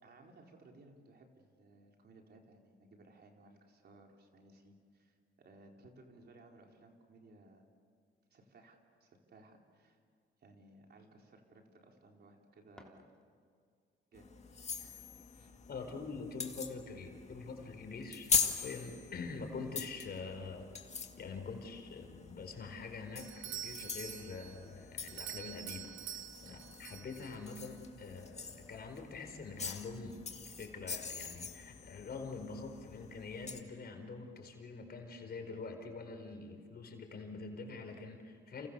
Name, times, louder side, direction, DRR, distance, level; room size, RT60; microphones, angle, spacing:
voice 1, 0.0-7.6 8.3-10.0 10.4-13.1 14.1-14.3 14.7-16.1, right 2 dB, 55° right, 1 dB, 4.3 m, -60 dB
sound 1, 12.6-13.7, left 1 dB, 5° left, 3.1 m, -63 dB
sound 2, 14.1-33.6, left 5 dB, 35° left, 2.2 m, -42 dB
voice 2, 15.7-20.7 21.2-30.2 30.4-38.7, left 4 dB, 55° left, 4 dB, 4.7 m, -45 dB
Doorbell, 23.2-27.7, right 11 dB, 85° right, 1.1 m, -47 dB
29.5 x 29.5 x 6.9 m, 2.2 s
cardioid pair, 90°, 20 cm